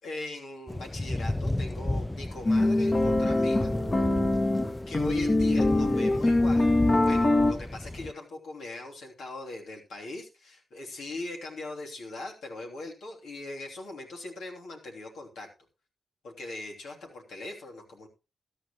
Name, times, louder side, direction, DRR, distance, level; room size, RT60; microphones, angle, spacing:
voice 1, 0.0-3.7 4.9-15.5 16.2-18.1, left 2 dB, 85° left, 0 dB, 3.0 m, -40 dB
Thunder / Rain, 0.7-8.1, left 1 dB, 15° left, 0.6 m, -34 dB
sound 1, 2.5-7.5, left 2 dB, 40° left, 1.7 m, -23 dB
14.0 x 11.5 x 3.0 m, 0.29 s
supercardioid pair, 45°, 0 cm